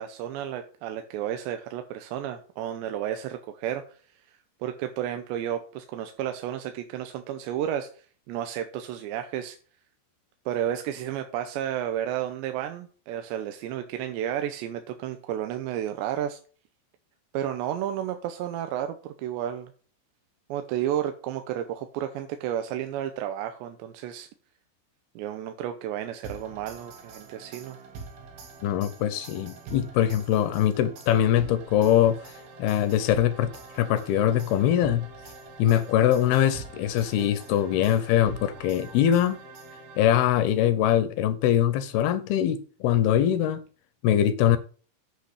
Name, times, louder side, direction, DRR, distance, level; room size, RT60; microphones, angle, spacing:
voice 1, 0.0-3.8 4.3-9.6 10.5-16.4 17.3-19.7 20.5-24.3 25.2-27.8, right 11 dB, 80° right, 3.1 m, -32 dB
sound 1, 26.2-40.4, right 4 dB, 65° right, 3.7 m, -45 dB
voice 2, 28.6-32.2 32.6-33.5 33.8-35.1 35.6-39.4 40.0-43.6 44.0-44.6, left 11 dB, 75° left, 2.5 m, -22 dB
8.4 x 6.4 x 8.2 m
omnidirectional pair, 5.1 m